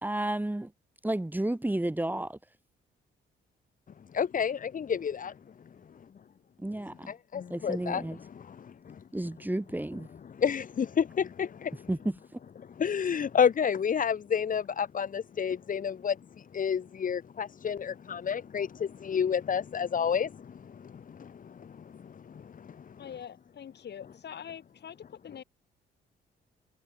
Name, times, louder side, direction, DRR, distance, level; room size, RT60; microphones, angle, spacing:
voice 1, 0.0-0.7 1.0-2.4 6.6-7.1 7.5-8.2 9.1-10.1 11.9-12.4, right 1 dB, 10° right, 3.1 m, -32 dB
voice 2, 4.1-5.3 7.1-8.0 8.4-9.0 10.4-11.9 12.8-23.0, left 7 dB, 40° left, 1.2 m, -30 dB
voice 3, 23.0-25.4, left 9 dB, 60° left, 5.4 m, -44 dB
cardioid pair, 90°, 20 cm